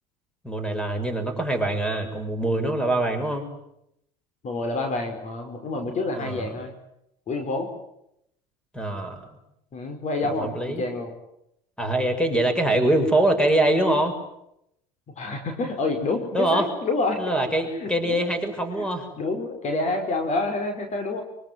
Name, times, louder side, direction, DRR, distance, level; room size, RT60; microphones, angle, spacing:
voice 1, 0.4-3.5 6.1-6.5 8.7-9.2 10.5-10.8 11.8-14.2 16.3-16.7 17.2-19.1, right 1 dB, 5° left, 7 dB, 6.0 m, -23 dB
voice 2, 4.4-6.7 7.3-7.7 9.7-11.1 15.2-17.2 17.8-18.2 18.8-18.9 19.2-21.2, left 3 dB, 45° left, 6 dB, 5.0 m, -28 dB
24.0 x 24.0 x 9.5 m, 0.79 s
hypercardioid pair, 85°, 17 cm